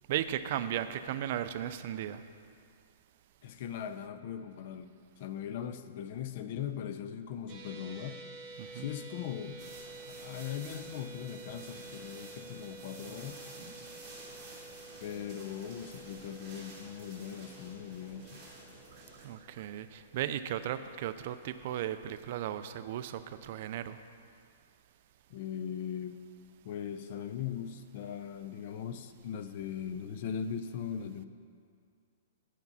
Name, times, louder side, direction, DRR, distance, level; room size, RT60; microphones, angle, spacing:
voice 1, 0.1-2.2 8.6-8.9 19.2-24.0, right 11 dB, 45° right, 11 dB, 0.4 m, -36 dB
voice 2, 3.4-8.2 8.7-9.7 10.1-13.4 15.0-18.4 25.3-26.2 26.6-31.3, left 8 dB, 45° left, 10 dB, 0.5 m, -39 dB
sound 1, 7.5-19.8, right 3 dB, 25° right, 1.1 m, -50 dB
sound 2, 9.6-19.3, right 2 dB, 5° right, 2.7 m, -51 dB
9.3 x 7.3 x 5.5 m, 2.3 s
hypercardioid pair, 160°, 0 cm